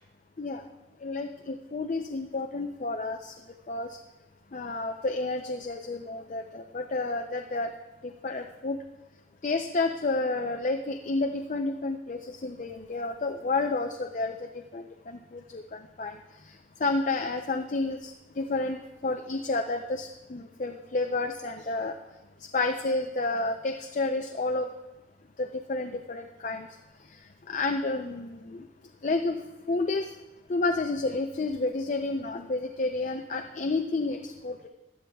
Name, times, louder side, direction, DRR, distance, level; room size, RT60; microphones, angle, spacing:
voice 1, 1.0-3.3 3.7-4.0 4.5-7.7 8.0-8.8 9.4-16.2 16.5-16.6 16.8-21.9 22.5-24.7 25.4-26.7 27.5-28.6 29.0-29.4 29.7-30.1 30.5-34.7, left 3 dB, 40° left, 4 dB, 0.5 m, -30 dB
16.0 x 10.5 x 2.3 m, 1.0 s
head